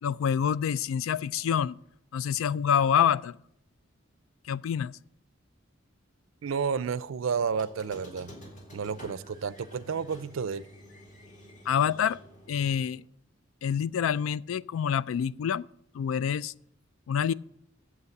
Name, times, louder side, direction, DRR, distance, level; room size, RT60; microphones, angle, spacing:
voice 1, 0.0-1.8 2.1-3.4 4.5-5.0 11.7-12.2 12.5-13.0 13.6-15.7 15.9-16.5 17.1-17.3, left 8 dB, 85° left, 0.3 m, -27 dB
voice 2, 6.4-8.3 8.7-10.6, right 6 dB, 75° right, 0.4 m, -31 dB
Squeak, 7.5-12.9, left 1 dB, 40° left, 2.1 m, -49 dB
8.3 x 7.6 x 6.5 m
head